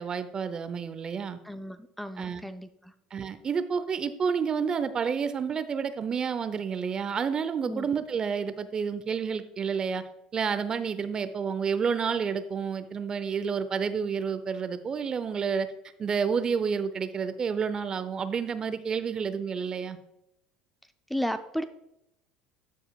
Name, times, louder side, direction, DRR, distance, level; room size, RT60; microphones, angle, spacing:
voice 1, 0.0-1.4 2.2-2.4 3.1-10.0 10.3-15.7 16.0-20.0, right 6 dB, 35° right, 0.7 m, -29 dB
voice 2, 1.4-2.9 7.7-7.9 21.1-21.6, equal, 5° left, 0.4 m, -34 dB
14.0 x 4.8 x 2.3 m
hypercardioid pair, 80°, 2 cm